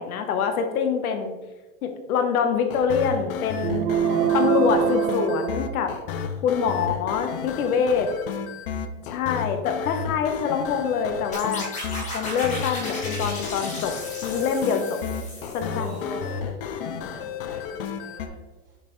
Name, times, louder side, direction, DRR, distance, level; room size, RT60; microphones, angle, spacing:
voice 1, 0.0-1.3 1.8-3.8 4.3-5.9 6.4-8.1 9.1-11.7 12.1-13.9 14.2-15.0 15.5-16.2 16.8-17.0, left 6 dB, 80° left, 6 dB, 1.1 m, -25 dB
sound 1, 2.7-18.3, left 7 dB, 40° left, 0.5 m, -32 dB
sound 2, 3.6-6.3, right 10 dB, 80° right, 0.6 m, -24 dB
voice 2, 8.9-9.7 15.4-16.8 17.1-18.3, equal, 20° right, -3 dB, 1.5 m, -41 dB
sound 3, 11.3-16.1, left 1 dB, 15° left, 1.6 m, -36 dB
6.6 x 5.6 x 3.1 m, 1.2 s
supercardioid pair, 170°, 43 cm